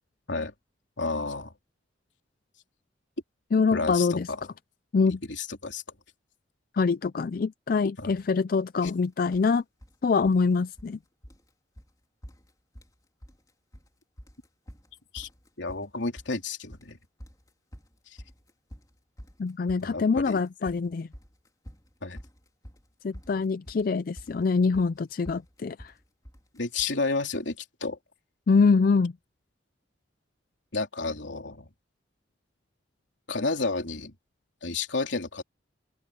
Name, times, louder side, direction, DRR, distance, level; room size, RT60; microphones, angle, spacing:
voice 1, 1.0-1.5 3.7-4.4 5.3-5.8 8.0-8.1 8.8-8.9 15.1-15.3 15.6-17.0 19.8-20.4 22.0-22.2 26.5-28.0 30.7-31.7 33.3-34.1 34.6-35.4, left 3 dB, 75° left, 3.2 m, -31 dB
voice 2, 3.5-4.3 4.9-5.2 6.7-9.6 10.0-11.0 19.4-21.1 23.0-25.9 28.5-29.1, left 4 dB, 50° left, 0.4 m, -24 dB
sound 1, 8.8-9.0 9.3-10.0 10.2-11.0 11.2-11.5 11.8-11.9 12.2-13.0 13.2-13.9 14.2-27.0, equal, 20° left, 4.0 m, -48 dB
head